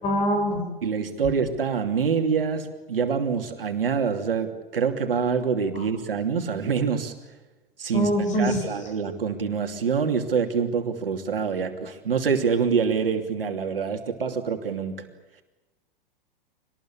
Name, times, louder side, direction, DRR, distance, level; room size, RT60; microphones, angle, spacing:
voice 1, 0.0-0.6 5.7-5.8 7.9-8.6, equal, 25° left, 5 dB, 7.5 m, -23 dB
voice 2, 0.8-7.1 7.8-8.1 8.4-15.1, right 6 dB, 75° right, 5 dB, 3.0 m, -25 dB
25.5 x 20.0 x 8.8 m, 1.1 s
figure-of-eight pair, 105°, 29 cm